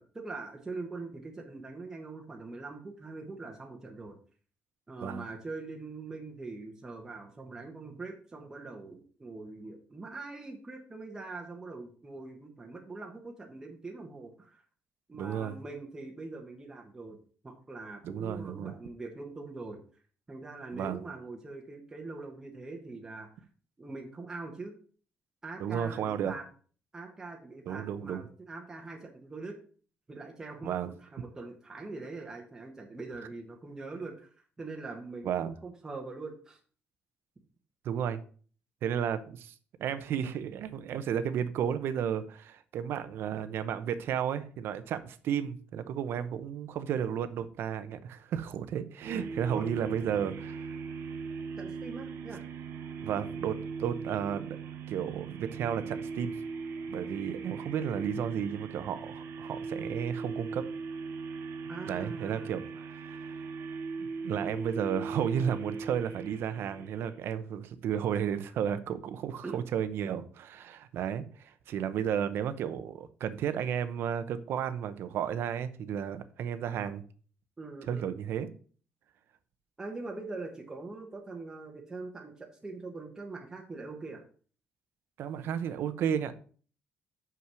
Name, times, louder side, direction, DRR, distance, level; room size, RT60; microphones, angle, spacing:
voice 1, 0.0-4.2 4.9-14.6 15.1-17.2 17.4-19.8 20.3-23.3 23.8-24.7 25.4-26.4 26.9-29.6 30.1-30.8 31.0-34.3 34.6-36.6 49.5-49.7 51.6-52.4 61.7-62.5 69.4-69.6 77.6-78.1 79.8-84.2, right 3 dB, 15° right, 1 dB, 1.1 m, -43 dB
voice 2, 15.2-15.5 18.0-18.7 20.7-21.0 25.6-26.3 27.7-28.2 30.6-30.9 35.2-35.5 37.8-38.2 38.8-39.5 39.8-50.8 53.0-54.6 54.9-56.3 56.8-60.7 61.9-63.4 64.0-77.0 77.9-78.5 85.2-86.3, right 8 dB, 65° right, 12 dB, 0.8 m, -33 dB
sound 1, 49.0-67.3, right 5 dB, 85° right, 1.2 m, -39 dB
6.1 x 5.8 x 6.2 m, 0.42 s
cardioid pair, 180°, 4 cm